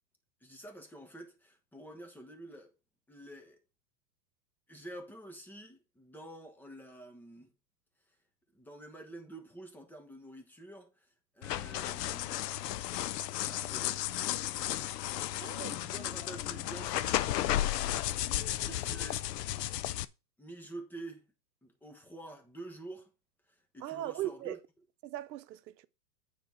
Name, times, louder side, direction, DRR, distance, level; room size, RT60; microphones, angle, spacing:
voice 1, 0.4-2.7 3.1-3.6 4.7-7.5 8.5-11.1 11.3-12.4 13.4-14.0 15.3-17.3 17.7-17.9 18.6-19.2 20.4-21.3 21.6-23.1 23.7-24.6, right 1 dB, 5° left, 1.2 m, -48 dB
sound 1, 11.4-20.0, left 13 dB, 75° left, 0.7 m, -34 dB
voice 2, 15.4-15.7 23.8-24.6 25.0-25.9, right 13 dB, 80° right, 0.8 m, -38 dB
9.1 x 4.2 x 5.8 m
supercardioid pair, 145°, 49 cm